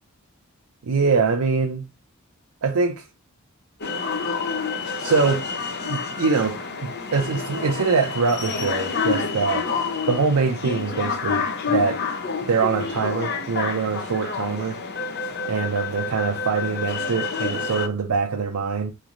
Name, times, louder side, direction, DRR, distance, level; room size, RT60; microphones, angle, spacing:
voice 1, 0.8-1.8 2.6-3.1 5.0-5.5 5.8-9.7 10.1-12.0 12.5-14.8 15.5-18.9, right 5 dB, 85° right, 0.5 m, -23 dB
sound 1, 3.8-17.9, left 4 dB, 50° left, 0.6 m, -28 dB
4.0 x 3.2 x 2.4 m
head